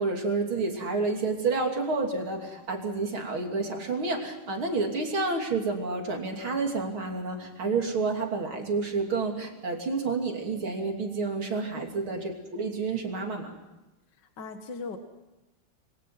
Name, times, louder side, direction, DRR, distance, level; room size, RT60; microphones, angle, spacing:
voice 1, 0.0-13.5, right 3 dB, 70° right, 2 dB, 3.7 m, -29 dB
voice 2, 14.2-15.0, left 4 dB, 55° left, 5 dB, 2.2 m, -39 dB
28.5 x 22.5 x 5.9 m, 1.0 s
omnidirectional pair, 2.3 m